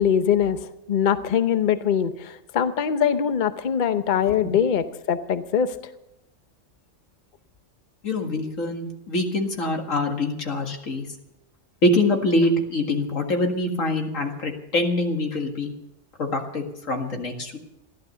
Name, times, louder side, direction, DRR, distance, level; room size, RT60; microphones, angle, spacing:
voice 1, 0.0-5.7, left 8 dB, 45° left, 11 dB, 0.8 m, -22 dB
voice 2, 8.0-11.1 11.8-15.7 16.2-17.6, left 2 dB, 85° left, 3 dB, 2.3 m, -24 dB
15.0 x 11.5 x 6.8 m, 0.88 s
omnidirectional pair, 1.3 m